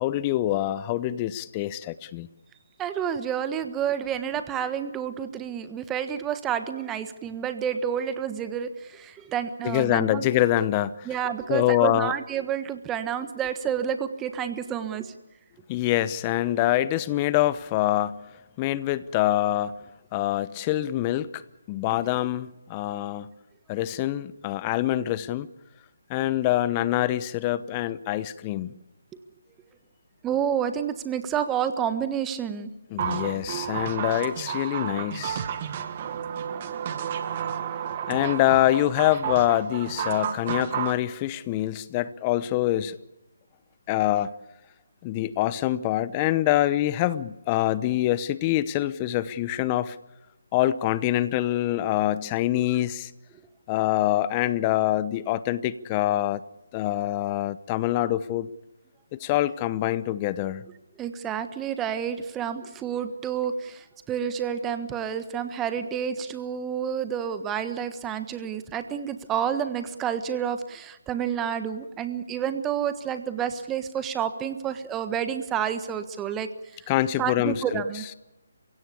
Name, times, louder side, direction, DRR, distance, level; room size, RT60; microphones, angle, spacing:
voice 1, 0.0-2.3 9.6-11.1 11.5-12.1 15.7-18.2 18.6-19.8 20.1-21.4 21.7-23.3 23.7-25.5 26.1-28.7 32.9-35.4 38.1-43.0 43.9-44.3 45.0-50.0 50.5-53.1 53.7-56.4 56.7-58.5 59.1-60.6 76.9-77.8, left 14 dB, 25° left, 17 dB, 0.9 m, -25 dB
voice 2, 2.8-10.3 11.0-15.1 30.2-32.7 61.0-76.5 77.2-78.0, right 8 dB, 15° right, 10 dB, 1.3 m, -29 dB
sound 1, 33.0-41.0, right 8 dB, 35° right, 1.9 m, -31 dB
30.0 x 16.5 x 8.5 m, 1.0 s
figure-of-eight pair, 150°, 0 cm